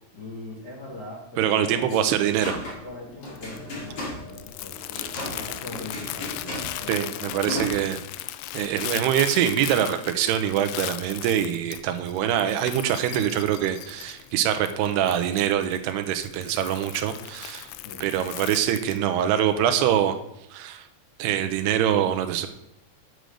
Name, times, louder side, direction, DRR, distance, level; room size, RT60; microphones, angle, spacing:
voice 1, 0.1-1.9 2.8-7.5 17.8-18.0, left 2 dB, 60° left, -4 dB, 1.1 m, -41 dB
voice 2, 1.4-2.6 6.9-8.0 8.5-17.7 18.0-20.1 20.5-20.9 21.2-22.5, right 10 dB, 80° right, 8 dB, 2.7 m, -24 dB
sound 1, 1.9-7.7, left 1 dB, 35° left, 2.1 m, -36 dB
Crumpling crinkling, 2.6-19.0, left 15 dB, 85° left, 2.7 m, -38 dB
7.7 x 6.8 x 6.3 m, 0.82 s
omnidirectional pair, 4.8 m